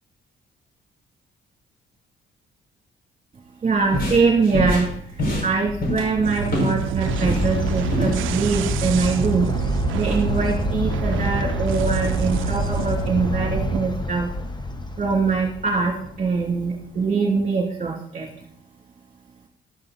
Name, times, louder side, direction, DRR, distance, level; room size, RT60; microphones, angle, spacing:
voice 1, 3.6-4.9 5.4-9.5 9.9-14.3 15.0-18.3, right 4 dB, 35° right, -1 dB, 2.8 m, -23 dB
sound 1, 3.7-6.8 7.1-8.2, left 1 dB, 50° left, 5.4 m, -25 dB
sound 2, 6.2-13.8, right 11 dB, 80° right, 0.5 m, -28 dB
sound 3, 7.0-16.9, left 2 dB, 20° left, 1.2 m, -28 dB
12.5 x 11.5 x 4.1 m, 0.65 s
cardioid pair, 90°, 20 cm